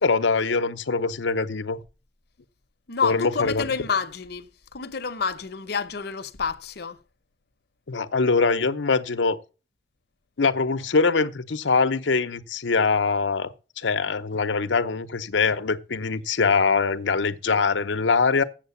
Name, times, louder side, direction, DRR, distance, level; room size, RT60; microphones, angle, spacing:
voice 1, 0.0-1.8 3.0-3.7 7.9-9.4 10.4-18.4, left 4 dB, 90° left, 0.8 m, -23 dB
voice 2, 2.9-7.0, left 5 dB, 60° left, 0.8 m, -28 dB
7.6 x 7.3 x 7.0 m
head